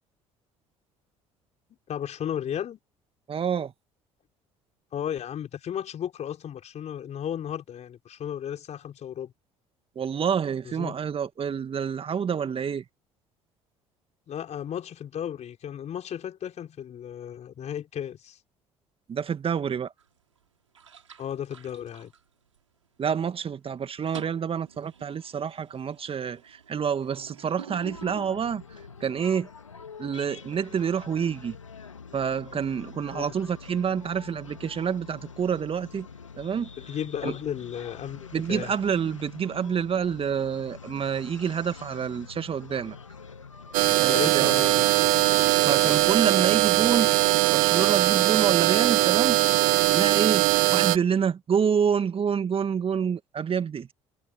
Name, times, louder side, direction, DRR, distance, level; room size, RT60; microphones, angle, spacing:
voice 1, 1.9-2.8 4.9-9.3 10.6-10.9 14.3-18.4 21.2-22.1 33.1-33.3 36.8-38.7 44.1-44.8, left 9 dB, 45° left, 4.9 m, -34 dB
voice 2, 3.3-3.7 10.0-12.8 19.1-19.9 23.0-29.5 30.0-31.6 32.1-36.1 36.4-36.7 37.2-37.3 38.3-43.0 43.9-44.5 45.6-47.1 47.5-49.4 49.9-53.9, right 7 dB, 35° right, 1.9 m, -28 dB
sound 1, 20.0-20.4 20.7-22.9 23.2-23.5 23.8-29.1, right 7 dB, 85° right, 5.3 m, -47 dB
sound 2, 27.9-47.3, left 5 dB, 90° left, 2.0 m, -45 dB
sound 3, 43.7-51.0, right 24 dB, 65° right, 0.8 m, -21 dB
figure-of-eight pair, 60°, 16 cm